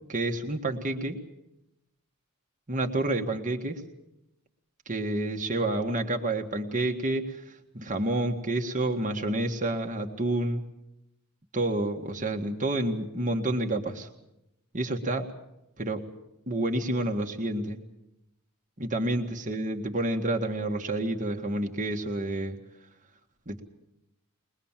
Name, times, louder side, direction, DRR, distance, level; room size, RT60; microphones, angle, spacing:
voice 1, 0.1-1.2 2.7-3.8 4.8-10.6 11.5-14.1 14.7-15.3 15.8-16.0 16.5-17.8 18.8-22.6 23.5-23.6, right 1 dB, 35° right, 3 dB, 1.6 m, -29 dB
22.0 x 21.0 x 7.4 m, 0.86 s
head